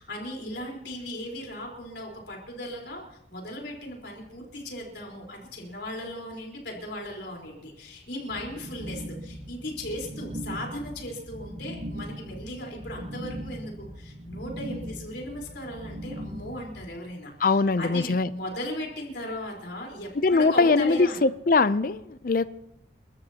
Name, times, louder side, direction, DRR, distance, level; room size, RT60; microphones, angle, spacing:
voice 1, 0.0-21.2, left 1 dB, 70° left, 4.1 m, -37 dB
sound 1, 8.3-16.8, equal, 60° right, 2.2 m, -39 dB
voice 2, 17.4-18.3 20.2-22.5, left 3 dB, 50° left, 0.5 m, -22 dB
30.0 x 13.0 x 2.9 m
head